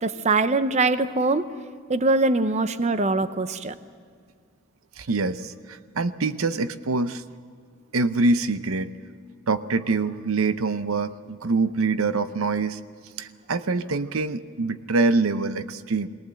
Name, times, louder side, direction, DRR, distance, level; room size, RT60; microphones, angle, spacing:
voice 1, 0.0-1.5 1.9-3.7, right 3 dB, 35° right, 12 dB, 0.6 m, -22 dB
voice 2, 5.0-7.2 7.9-8.9 9.5-12.8 13.2-16.1, right 3 dB, 85° right, 12 dB, 0.7 m, -25 dB
20.5 x 19.0 x 7.6 m, 2.1 s
head